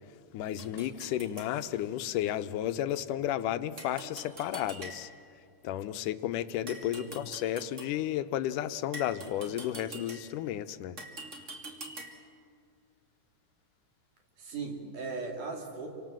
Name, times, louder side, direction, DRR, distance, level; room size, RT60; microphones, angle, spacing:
voice 1, 0.3-5.1 5.6-11.0, left 12 dB, 80° left, 12 dB, 2.3 m, -33 dB
sound 1, 0.6-1.5 3.8-5.3 6.7-8.0 8.9-10.5 11.0-12.3, right 2 dB, 25° right, 2.4 m, -45 dB
voice 2, 14.4-15.9, right 4 dB, 70° right, 2 dB, 4.3 m, -38 dB
29.5 x 25.0 x 7.6 m, 2.2 s
omnidirectional pair, 3.8 m